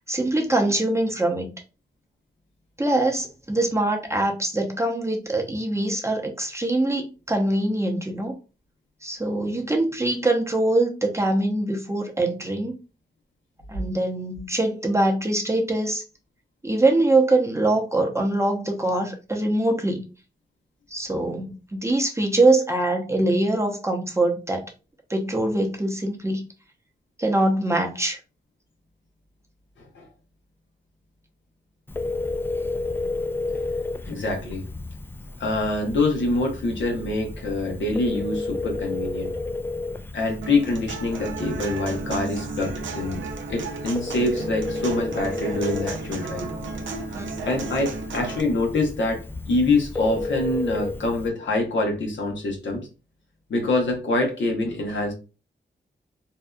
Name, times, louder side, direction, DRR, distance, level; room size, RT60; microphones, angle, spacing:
voice 1, 0.1-1.5 2.8-8.3 9.0-12.7 13.7-16.0 16.6-20.0 20.9-24.7 25.1-26.4 27.2-28.2 47.1-47.2, right 2 dB, 15° right, 0.7 m, -23 dB
Telephone, 31.9-51.3, left 3 dB, 10° left, 0.3 m, -32 dB
voice 2, 34.0-34.6 35.4-39.3 40.1-43.2 43.5-46.5 47.4-52.9 53.5-55.1, left 2 dB, 80° left, 0.8 m, -25 dB
Human voice / Acoustic guitar, 40.4-48.4, right 4 dB, 85° right, 0.5 m, -34 dB
2.6 x 2.3 x 2.2 m
cardioid pair, 50°, 19 cm